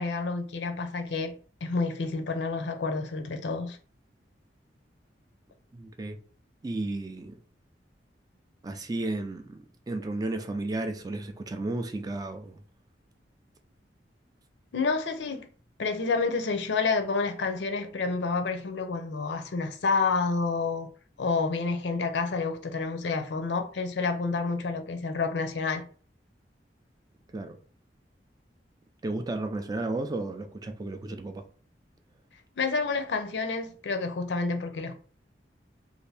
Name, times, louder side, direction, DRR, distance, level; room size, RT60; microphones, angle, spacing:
voice 1, 0.0-1.3 1.6-3.8 14.7-15.5 15.8-20.9 21.2-25.8 32.6-34.9, left 4 dB, 75° left, 0.5 m, -29 dB
voice 2, 5.7-6.2 6.6-7.4 8.6-12.6 27.3-27.6 29.0-31.4, right 2 dB, 20° right, 0.3 m, -33 dB
2.7 x 2.5 x 3.3 m
head